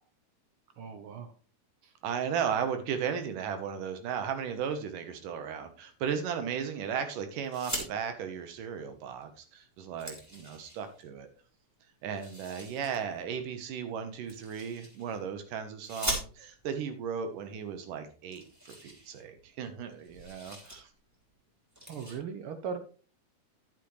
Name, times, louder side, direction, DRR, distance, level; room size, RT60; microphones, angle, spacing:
voice 1, 0.8-1.3 1.8-1.9 21.9-22.8, right 6 dB, 70° right, 9 dB, 1.3 m, -38 dB
voice 2, 2.0-11.3 12.0-20.9, right 7 dB, 85° right, 8 dB, 2.9 m, -35 dB
sound 1, 7.4-7.9 9.2-9.3 9.6-11.0 12.1-13.0 14.3-15.2 15.8-16.7 17.6-17.7 17.9-18.0 18.3-19.6 19.9-20.8 21.1-21.3 21.7-22.1, equal, 5° right, 2.3 m, -40 dB
11.0 x 8.4 x 3.3 m, 0.38 s
omnidirectional pair, 3.7 m